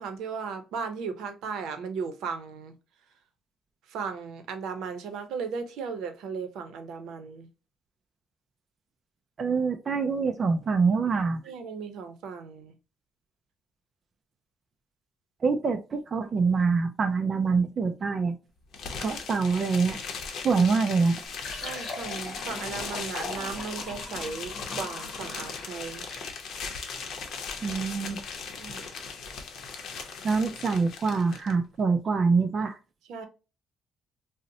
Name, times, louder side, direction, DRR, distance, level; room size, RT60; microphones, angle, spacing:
voice 1, 0.0-2.7 3.9-7.5 11.4-12.7 20.5-20.7 21.6-26.0 28.6-28.9 33.1-33.3, right 5 dB, 80° right, 0.6 m, -36 dB
voice 2, 9.4-11.4 15.4-18.4 19.0-20.0 20.4-21.2 27.6-28.2 30.2-32.8, right 4 dB, 30° right, 0.3 m, -25 dB
sound 1, 18.7-31.5, left 5 dB, 55° left, 0.7 m, -38 dB
Fill (with liquid), 21.3-26.4, left 3 dB, 35° left, 1.0 m, -40 dB
3.9 x 2.0 x 2.5 m
cardioid pair, 165°, 0 cm